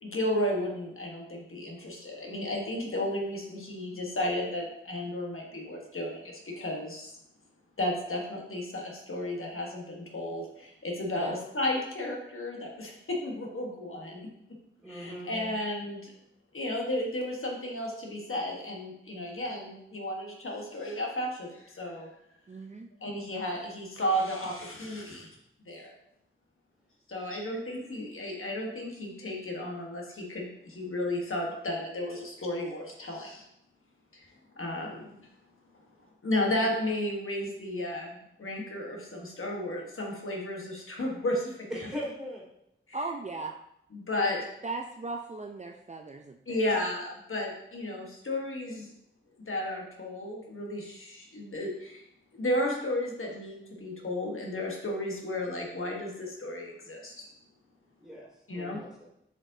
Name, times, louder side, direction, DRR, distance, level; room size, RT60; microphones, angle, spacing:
voice 1, 0.0-7.1 7.8-14.3 14.9-16.1 16.5-22.1 23.0-25.3 25.6-25.9 27.1-33.4 34.1-34.3 34.6-35.1 36.2-41.7 43.9-44.4 46.5-48.9 49.5-52.0 52.4-57.3 58.5-58.8, left 1 dB, 80° left, -1 dB, 1.2 m, -33 dB
voice 2, 14.8-15.3 27.5-27.7 41.7-42.4 58.0-59.0, equal, 5° right, -6 dB, 2.6 m, -40 dB
voice 3, 22.5-22.9 42.9-43.6 44.2-44.3 44.6-46.6, right 3 dB, 35° right, 3 dB, 0.4 m, -37 dB
7.4 x 5.0 x 2.7 m, 0.76 s
wide cardioid pair, 75°, 21 cm